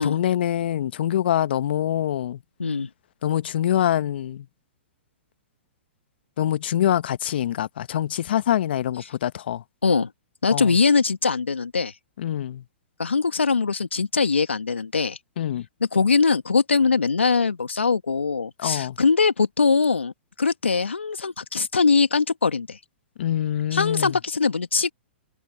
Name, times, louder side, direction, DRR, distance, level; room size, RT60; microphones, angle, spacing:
voice 1, 0.0-2.4 3.2-4.4 6.4-9.6 10.5-10.7 12.2-12.6 15.4-15.6 18.6-19.0 23.2-24.2, left 11 dB, 60° left, 1.2 m, -24 dB
voice 2, 2.6-2.9 9.0-9.1 9.8-10.1 10.4-11.9 13.0-15.2 15.9-20.1 20.4-22.8 23.7-24.9, left 4 dB, 85° left, 2.1 m, -22 dB
figure-of-eight pair, 115°, 6 cm